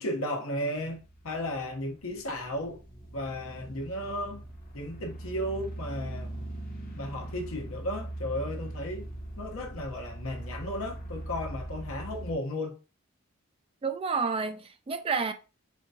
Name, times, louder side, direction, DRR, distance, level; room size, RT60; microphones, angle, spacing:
voice 1, 0.0-2.8 3.1-4.4 4.7-6.4 6.9-9.1 9.4-12.8, left 1 dB, 75° left, 1.0 m, -34 dB
sound 1, 0.8-12.3, right 1 dB, 40° left, 1.0 m, -41 dB
voice 2, 13.8-15.3, right 5 dB, 25° right, 0.3 m, -30 dB
4.3 x 3.4 x 2.8 m
head